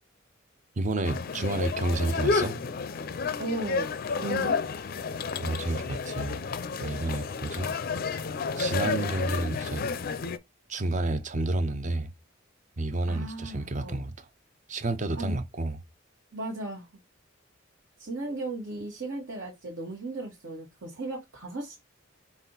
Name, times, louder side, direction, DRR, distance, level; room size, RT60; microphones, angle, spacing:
voice 1, 0.8-2.6 5.4-6.4 6.8-7.7 8.6-9.9 10.7-12.1 12.8-14.2 14.7-15.8, right 2 dB, 35° right, 0.6 m, -30 dB
sound 1, 1.0-10.4, left 4 dB, 45° left, 0.4 m, -31 dB
voice 2, 3.4-3.9 4.2-4.6 13.1-14.0 15.2-15.4 16.3-16.8 18.0-21.8, right 2 dB, 65° right, 1.5 m, -36 dB
5.4 x 2.5 x 3.9 m
head